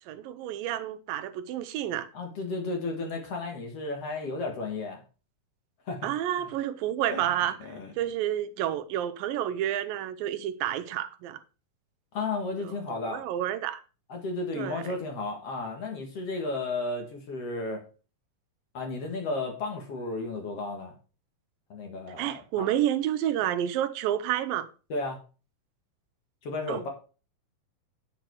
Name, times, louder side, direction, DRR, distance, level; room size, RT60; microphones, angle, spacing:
voice 1, 0.1-2.1 6.0-7.6 8.0-11.4 13.1-13.8 14.5-14.9 22.2-24.7 26.7-26.8, right 11 dB, 85° right, 2.4 m, -29 dB
voice 2, 2.1-5.0 5.9-6.5 7.1-7.3 7.6-7.9 12.1-13.2 14.1-17.8 18.7-21.0 21.7-22.7 24.9-25.2 26.4-26.9, left 3 dB, 50° left, 2.2 m, -33 dB
9.0 x 6.8 x 4.6 m
omnidirectional pair, 4.0 m